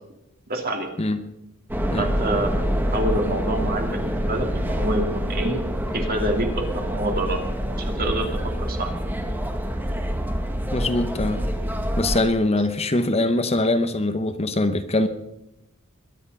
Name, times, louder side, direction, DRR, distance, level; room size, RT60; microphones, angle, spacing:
voice 1, 0.5-0.9 2.0-2.7 2.9-5.6 5.9-7.4 7.8-8.9 12.6-12.7, right 1 dB, 45° right, 3 dB, 2.9 m, -27 dB
sound 1, 1.7-12.2, equal, 10° right, 1.3 m, -26 dB
voice 2, 10.7-11.4 12.0-15.1, left 2 dB, 30° left, 9 dB, 1.0 m, -22 dB
22.0 x 11.0 x 5.6 m, 0.88 s
head